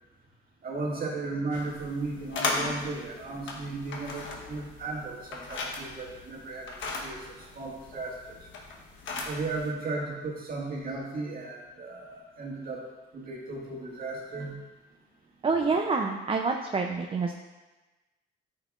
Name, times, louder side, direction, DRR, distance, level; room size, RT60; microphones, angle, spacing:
voice 1, 0.6-8.4 9.2-12.8 13.1-14.6, right 3 dB, 50° right, -3 dB, 1.7 m, -35 dB
sound 1, 1.5-9.7, left 3 dB, 75° left, 1.1 m, -37 dB
voice 2, 15.4-17.3, right 4 dB, 25° right, 2 dB, 0.4 m, -27 dB
8.7 x 5.7 x 2.4 m, 1.2 s
cardioid pair, 90°, 20 cm